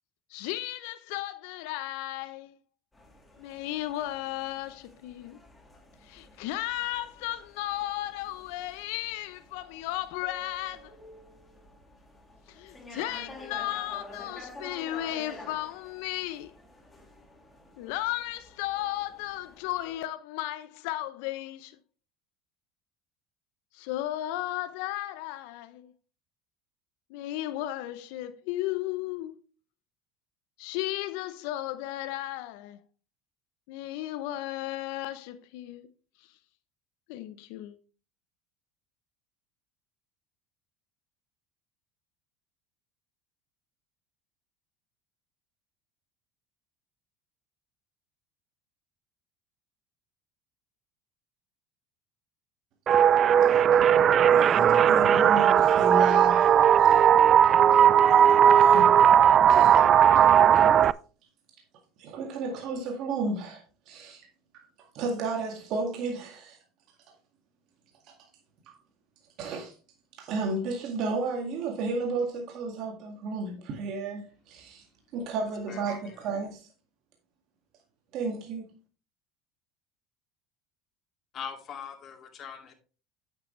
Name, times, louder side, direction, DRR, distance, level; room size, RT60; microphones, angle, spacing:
voice 1, 0.3-2.5 3.4-5.4 6.0-10.9 12.5-16.5 17.8-21.8 23.7-25.9 27.1-29.4 30.6-32.8 33.7-35.9 37.1-37.8, left 15 dB, 75° left, 0.6 m, -34 dB
sound 1, 2.9-19.9, left 2 dB, 15° left, 3.0 m, -49 dB
sound 2, 52.9-60.9, right 9 dB, 40° right, 0.3 m, -18 dB
voice 2, 54.3-57.1 57.4-57.5 58.5-59.0 59.5-59.8 62.0-64.3 64.5-66.6 69.4-69.7 70.2-74.8 75.1-76.7 78.1-78.7, right 3 dB, 60° right, 1.9 m, -33 dB
voice 3, 75.7-76.2 81.3-82.7, left 7 dB, 45° left, 2.4 m, -41 dB
9.0 x 7.5 x 3.2 m
supercardioid pair, 90°, 0 cm